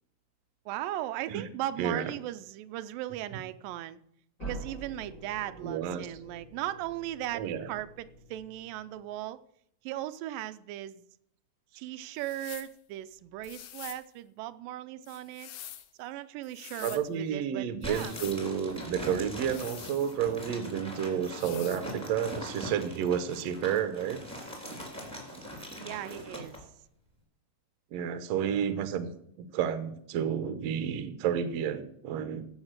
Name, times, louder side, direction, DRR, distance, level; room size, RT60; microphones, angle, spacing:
voice 1, 0.7-4.0 4.4-9.4 9.8-11.1 11.8-15.5 16.0-18.2 25.8-26.6, right 14 dB, 90° right, 2.3 m, -37 dB
voice 2, 1.8-2.1 5.6-6.1 7.3-7.7 16.8-24.2 27.9-29.1 29.4-32.4, right 8 dB, 65° right, 1.8 m, -31 dB
sound 1, 4.4-9.1, right 2 dB, 25° left, 2.3 m, -46 dB
sound 2, 12.2-12.7 13.4-14.1 15.0-15.9 16.4-17.0 17.8-18.4 19.4-20.4 21.3-21.9, left 12 dB, 75° left, 1.5 m, -46 dB
sound 3, 17.8-26.6, equal, ahead, 2.8 m, -41 dB
15.0 x 6.4 x 6.6 m
omnidirectional pair, 3.9 m